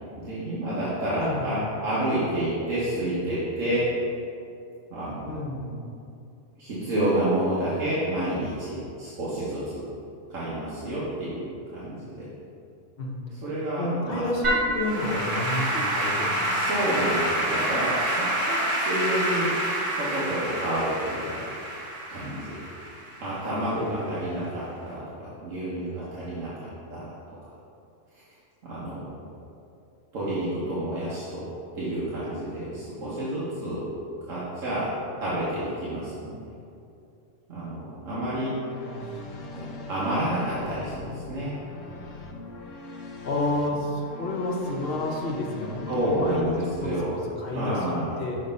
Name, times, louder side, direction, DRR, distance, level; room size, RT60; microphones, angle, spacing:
voice 1, 0.2-3.9 4.9-5.3 6.6-9.8 10.3-12.3 13.3-14.3 16.5-19.5 19.9-21.4 22.1-22.6 23.2-27.0 28.1-28.2 28.6-29.1 30.1-31.5 31.7-33.8 34.3-36.6 37.5-38.5 39.5-41.5 41.9-42.1 45.9-47.1 47.5-48.2, right 1 dB, 80° right, -10 dB, 1.5 m, -29 dB
voice 2, 1.2-1.7 5.3-5.8 13.0-13.2 13.8-16.7 23.8-24.4 38.8-39.3 43.2-48.4, left 2 dB, 50° left, -2 dB, 1.0 m, -30 dB
Applause / Keyboard (musical), 14.4-23.8, right 1 dB, 25° right, 1.5 m, -27 dB
sound 1, 38.2-46.4, left 2 dB, 75° left, 1.0 m, -41 dB
6.6 x 3.3 x 5.3 m, 2.6 s
omnidirectional pair, 1.3 m